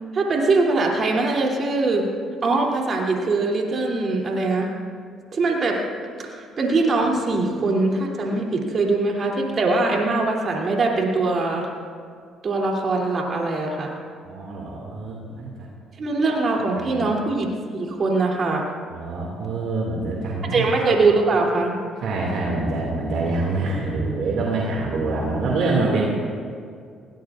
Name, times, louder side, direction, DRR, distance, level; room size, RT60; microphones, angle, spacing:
voice 1, 0.1-2.0 2.4-4.7 5.3-5.8 6.2-11.7 12.4-13.9 16.0-18.7 20.5-21.7, right 3 dB, 50° right, -1 dB, 3.0 m, -22 dB
voice 2, 14.2-15.7 16.7-17.1 18.9-20.7 22.0-26.0, right 3 dB, 70° right, -2 dB, 2.3 m, -25 dB
20.0 x 17.5 x 2.5 m, 2.2 s
hypercardioid pair, 60°, 0 cm